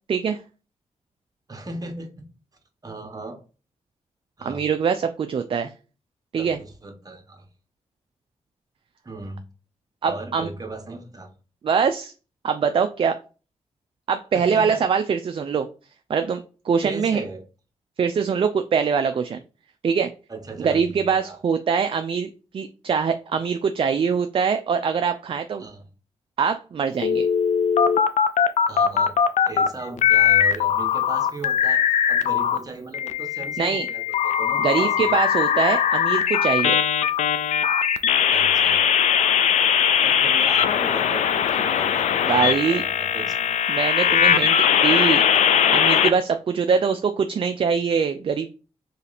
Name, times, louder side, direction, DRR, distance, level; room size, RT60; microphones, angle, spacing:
voice 1, 1.5-2.1 2.8-3.4 4.4-4.7 6.4-7.5 9.0-9.4 10.0-11.3 14.3-14.9 16.8-17.4 20.3-21.4 25.6-25.9 28.7-29.1 29.4-31.8 32.1-35.2 38.3-38.8 40.0-44.6, right 2 dB, 30° right, 4 dB, 1.1 m, -37 dB
voice 2, 4.4-5.7 6.3-6.6 10.0-10.5 11.6-12.1 12.4-13.2 14.1-15.7 16.1-17.2 18.0-19.4 19.8-20.1 20.6-22.3 22.5-25.6 26.4-27.3 33.6-33.9 34.6-36.8 42.2-42.8 43.7-44.5 44.8-45.2 45.7-48.5, right 6 dB, 50° right, 8 dB, 0.4 m, -23 dB
sound 1, 27.0-29.7 30.0-32.6 32.9-46.1, left 8 dB, 80° left, 0.4 m, -20 dB
3.2 x 2.7 x 4.0 m, 0.35 s
cardioid pair, 55°, 12 cm